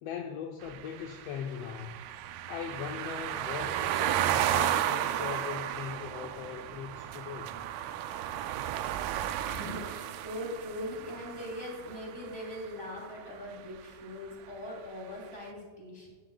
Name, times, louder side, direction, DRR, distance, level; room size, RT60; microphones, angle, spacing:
voice 1, 0.0-2.0 2.5-7.5, left 8 dB, 80° left, 4 dB, 1.4 m, -40 dB
sound 1, 0.6-12.7, right 11 dB, 85° right, 1.9 m, -33 dB
voice 2, 9.5-16.1, left 1 dB, 10° left, -3 dB, 3.1 m, -41 dB
14.0 x 11.5 x 2.3 m, 1.5 s
omnidirectional pair, 3.3 m